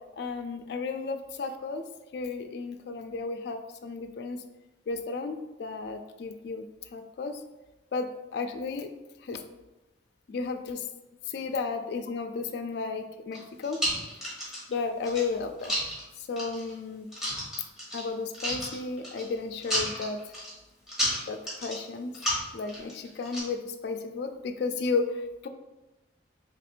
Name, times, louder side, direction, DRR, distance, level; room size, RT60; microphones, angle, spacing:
voice 1, 0.2-1.9 2.1-4.4 4.9-6.6 6.9-7.4 7.9-8.9 9.2-9.4 10.3-10.8 11.3-13.8 14.7-15.7 16.2-17.1 17.9-20.2 21.3-22.1 22.5-25.5, left 4 dB, 55° left, 7 dB, 0.3 m, -33 dB
sound 1, 13.3-14.7 15.0-16.0 16.4-16.7 17.1-18.1 18.3-19.3 19.6-20.5 20.9-21.8 22.1-23.4, equal, ahead, 1.2 m, -31 dB
2.9 x 2.5 x 4.3 m, 1.0 s
head